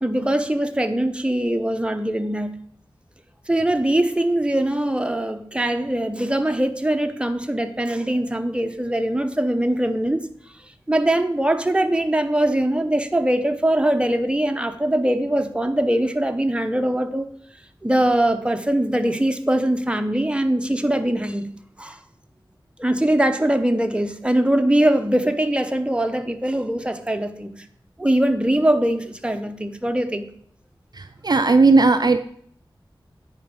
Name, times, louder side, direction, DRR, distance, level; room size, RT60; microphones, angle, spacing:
voice 1, 0.0-2.5 3.5-10.3 10.9-17.3 17.8-21.5 21.8-22.0 22.8-27.5 28.0-30.3, right 1 dB, 10° right, 7 dB, 0.9 m, -22 dB
voice 2, 30.9-32.2, right 3 dB, 50° right, 10 dB, 0.4 m, -16 dB
9.3 x 5.0 x 5.4 m, 0.62 s
wide cardioid pair, 50°, 9 cm